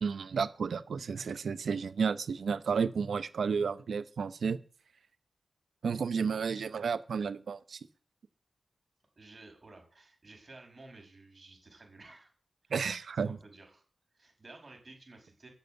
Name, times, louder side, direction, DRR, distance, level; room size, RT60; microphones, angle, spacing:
voice 1, 0.0-4.6 5.8-7.8 12.7-13.4, right 5 dB, 80° right, 14 dB, 0.8 m, -32 dB
voice 2, 6.2-6.6 9.2-12.3 12.6-12.7 13.2-13.8 14.1-15.5, right 2 dB, 45° right, 2 dB, 6.2 m, -54 dB
10.5 x 6.8 x 9.3 m, 0.42 s
cardioid pair, 55°, 0 cm